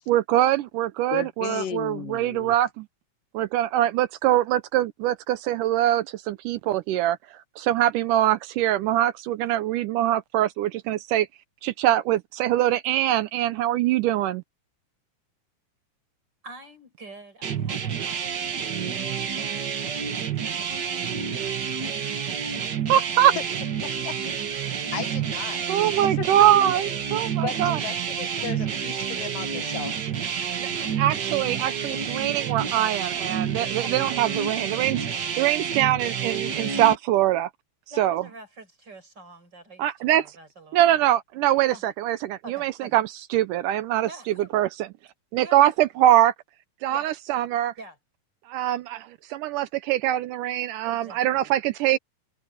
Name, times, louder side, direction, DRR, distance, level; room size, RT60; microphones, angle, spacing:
voice 1, 0.1-2.9 3.3-7.2 7.6-11.3 11.6-14.4 22.9-23.4 25.7-27.8 30.6-30.7 31.0-35.1 35.4-37.5 38.0-38.2 39.8-40.3 40.7-44.9 45.3-46.3 46.8-47.7 48.5-52.0, right 13 dB, 80° right, 2.2 m, -23 dB
voice 2, 1.1-2.6 23.8-26.7 27.4-30.1, left 8 dB, 85° left, 3.3 m, -36 dB
voice 3, 16.4-19.4 19.7-21.8 30.4-31.1 33.8-34.1 37.9-41.1 41.7-41.9 42.4-43.0 44.0-44.5 45.4-45.7 46.9-47.1 47.8-48.0 50.8-51.5, right 2 dB, 30° right, 6.1 m, -46 dB
sound 1, 17.4-37.0, right 7 dB, 50° right, 1.2 m, -29 dB
omnidirectional pair, 3.8 m